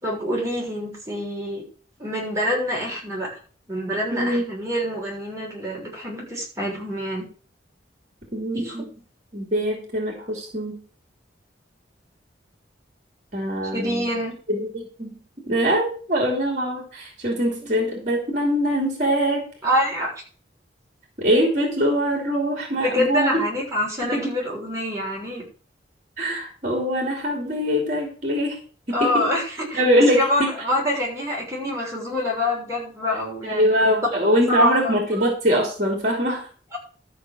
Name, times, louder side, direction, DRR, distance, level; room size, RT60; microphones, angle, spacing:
voice 1, 0.0-1.6 2.0-3.3 3.7-7.3 8.5-8.8 13.7-14.3 19.6-20.1 22.8-25.4 28.9-29.8 30.1-33.8 34.5-35.3 36.7-36.8, left 1 dB, 15° right, -3 dB, 6.6 m, -26 dB
voice 2, 4.1-4.5 8.3-8.8 9.3-10.8 13.3-14.1 14.5-19.5 21.2-23.3 24.0-24.2 26.2-28.6 28.9-29.3 29.7-30.5 33.4-36.5, equal, 40° right, 1 dB, 2.9 m, -23 dB
13.0 x 6.0 x 6.2 m, 0.40 s
head